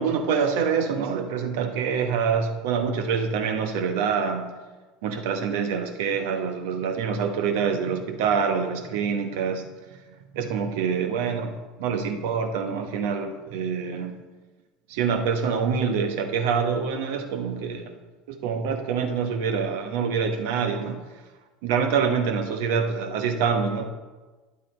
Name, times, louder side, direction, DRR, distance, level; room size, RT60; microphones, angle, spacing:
voice 1, 0.0-4.5 5.0-9.7 10.3-14.1 14.9-17.9 18.3-21.0 21.6-23.9, right 6 dB, 70° right, 6 dB, 0.9 m, -26 dB
9.5 x 8.1 x 3.3 m, 1.3 s
hypercardioid pair, 75°, 0 cm